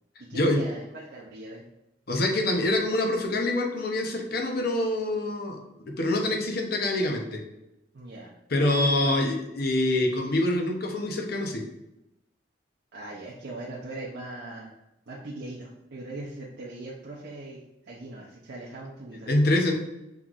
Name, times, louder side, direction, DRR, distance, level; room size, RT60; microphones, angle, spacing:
voice 1, 0.2-1.6 7.9-8.4 8.7-9.2 12.9-14.7 15.1-19.3, right 2 dB, 65° right, -5 dB, 0.6 m, -40 dB
voice 2, 2.1-7.4 8.5-11.6 19.3-19.7, left 1 dB, 60° left, 2 dB, 0.8 m, -25 dB
5.6 x 3.2 x 2.4 m, 0.90 s
head